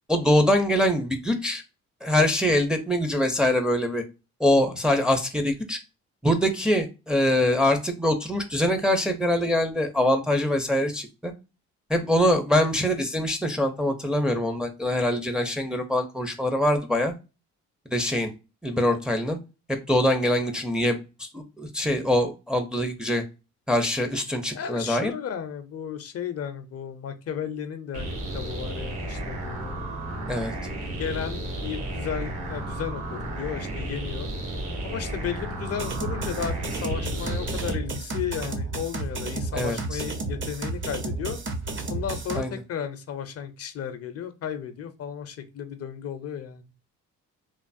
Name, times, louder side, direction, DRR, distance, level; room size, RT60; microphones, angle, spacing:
voice 1, 0.1-1.6 2.0-4.0 4.4-5.8 6.2-11.3 11.9-17.1 17.9-18.3 18.6-19.4 19.7-23.2 23.7-25.1 30.3-30.5 39.5-40.0 42.3-42.5, left 1 dB, 5° right, 4 dB, 0.5 m, -24 dB
voice 2, 24.5-29.9 31.0-34.3 34.8-41.4 41.9-46.7, left 8 dB, 55° left, 9 dB, 0.5 m, -34 dB
sound 1, 27.9-37.7, right 1 dB, 65° right, 1.2 m, -33 dB
sound 2, 35.7-42.4, right 2 dB, 40° right, 0.7 m, -32 dB
3.1 x 2.0 x 2.5 m, 0.29 s
cardioid pair, 90°, 30 cm